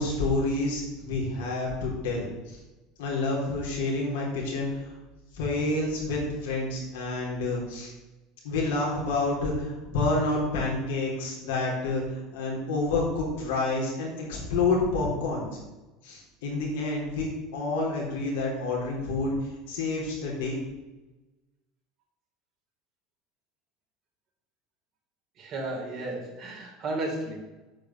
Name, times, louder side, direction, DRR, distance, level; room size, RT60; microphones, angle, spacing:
voice 1, 0.0-2.6 3.0-4.9 5.3-7.9 8.4-15.4 16.0-20.6, left 2 dB, 80° left, -2 dB, 3.8 m, -29 dB
voice 2, 25.4-27.4, right 2 dB, 50° right, -1 dB, 3.9 m, -33 dB
9.0 x 5.3 x 8.0 m, 1.1 s
hypercardioid pair, 85°, 0 cm